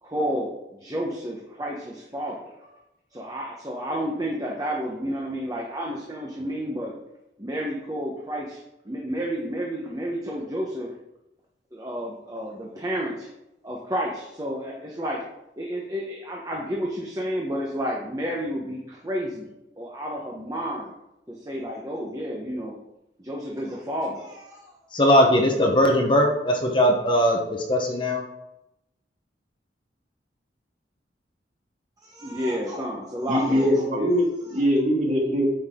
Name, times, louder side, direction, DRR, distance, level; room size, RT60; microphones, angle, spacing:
voice 1, 0.0-2.8 3.1-6.9 7.4-10.9 11.7-13.3 13.6-15.2 15.6-19.5 19.8-20.9 21.3-22.8 23.2-24.7 32.0-34.1, equal, 20° right, -2 dB, 1.1 m, -31 dB
voice 2, 24.9-27.4 27.7-28.2, equal, 25° left, 1 dB, 1.0 m, -19 dB
voice 3, 33.3-35.4, equal, 45° right, -3 dB, 2.4 m, -22 dB
9.1 x 6.4 x 3.7 m, 0.88 s
head